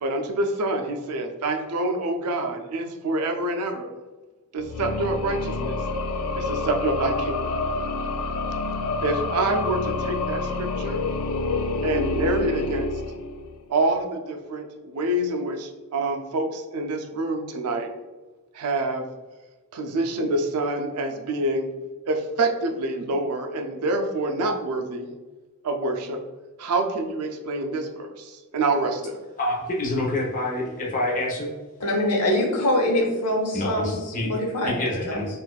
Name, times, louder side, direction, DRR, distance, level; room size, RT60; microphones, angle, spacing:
voice 1, 0.0-3.9 4.5-5.8 6.4-7.5 9.0-11.1 11.8-12.9 13.7-17.9 18.5-19.1 19.7-21.7 22.0-25.1 25.6-26.2 26.6-29.2, right 2 dB, 80° right, 4 dB, 0.4 m, -27 dB
sound 1, 4.6-13.7, left 3 dB, 70° left, 0.4 m, -28 dB
voice 2, 29.4-31.5 33.5-34.3 34.6-35.3, left 1 dB, 35° left, -2 dB, 0.8 m, -27 dB
voice 3, 31.8-35.2, left 1 dB, 90° left, 0 dB, 0.8 m, -24 dB
4.0 x 2.5 x 2.3 m, 1.2 s
head